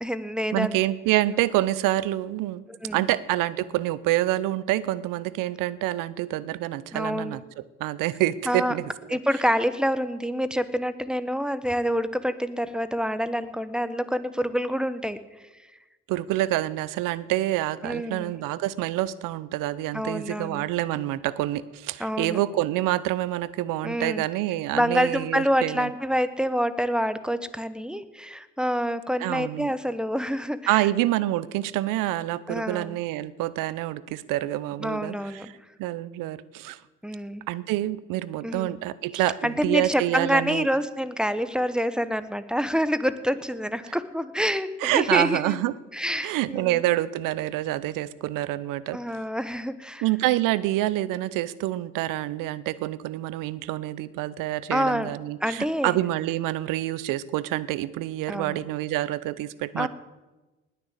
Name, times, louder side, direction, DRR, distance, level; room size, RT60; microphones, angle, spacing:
voice 1, 0.0-0.8 2.8-3.1 6.9-7.4 8.5-8.8 9.1-15.2 17.8-18.3 19.9-20.7 22.0-22.4 23.8-24.3 24.7-30.9 32.5-33.0 34.8-35.5 37.0-37.5 38.4-38.8 39.4-45.6 45.9-46.8 48.9-50.0 54.7-55.1 55.4-56.0 58.3-58.6 59.8-59.9, equal, ahead, 13 dB, 1.2 m, -27 dB
voice 2, 0.5-2.6 2.9-7.4 7.8-9.2 16.1-25.9 29.2-29.7 30.7-36.8 37.5-40.7 44.8-45.7 46.2-49.0 50.0-59.9, right 15 dB, 75° right, 18 dB, 0.7 m, -27 dB
19.5 x 6.8 x 8.1 m, 1.1 s
hypercardioid pair, 45°, 33 cm